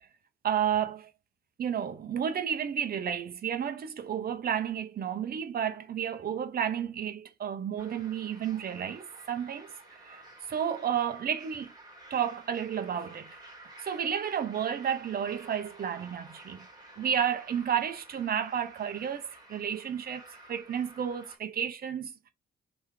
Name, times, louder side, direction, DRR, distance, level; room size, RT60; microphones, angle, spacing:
voice 1, 0.4-1.1 1.6-10.2 10.5-11.7 12.1-13.3 13.8-16.6 17.0-19.2 19.5-22.3, right 8 dB, 50° right, 0.9 m, -31 dB
sound 1, 7.8-21.4, right 1 dB, 20° right, 2.0 m, -52 dB
3.5 x 3.1 x 3.2 m
cardioid pair, 90°, 20 cm